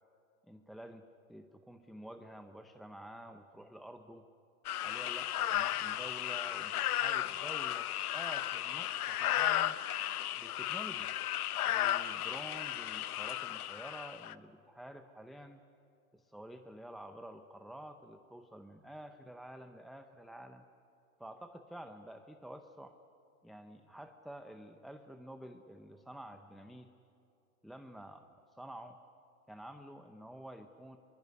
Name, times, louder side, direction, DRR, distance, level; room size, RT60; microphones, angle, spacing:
voice 1, 0.5-4.3 4.8-9.8 10.3-11.1 11.7-15.6 16.1-20.6 21.2-22.9 23.4-26.9 27.6-29.0 29.5-31.0, right 1 dB, ahead, 7 dB, 0.6 m, -49 dB
sound 1, 4.6-14.3, left 12 dB, 85° left, 0.9 m, -34 dB
24.5 x 22.5 x 9.5 m, 2.7 s
hypercardioid pair, 125°, 43 cm